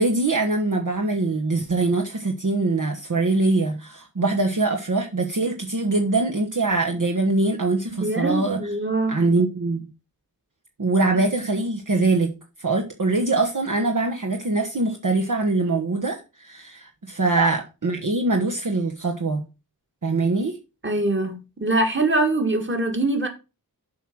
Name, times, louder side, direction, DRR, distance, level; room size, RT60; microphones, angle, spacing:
voice 1, 0.0-8.6 9.1-9.9 10.8-12.3 12.6-19.4 20.0-20.6, right 3 dB, 55° right, 1.2 m, -23 dB
voice 2, 8.0-9.2 17.4-17.5 20.8-23.3, right 2 dB, 30° right, 2.1 m, -23 dB
7.9 x 4.8 x 6.1 m
wide cardioid pair, 60°, 38 cm